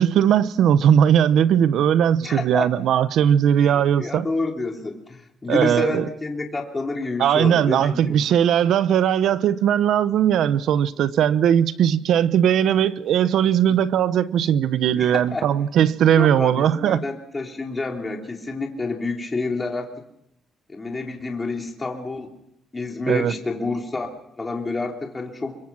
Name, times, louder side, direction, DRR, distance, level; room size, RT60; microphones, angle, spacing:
voice 1, 0.0-4.3 5.5-6.1 7.2-17.0 23.1-23.3, right 9 dB, 75° right, 0.9 m, -19 dB
voice 2, 2.2-2.7 3.6-8.2 14.9-15.4 16.1-19.9 20.7-22.3 22.7-24.1 24.4-25.6, left 3 dB, 25° left, 3.3 m, -28 dB
23.5 x 22.0 x 6.1 m
cardioid pair, 90°, 0 cm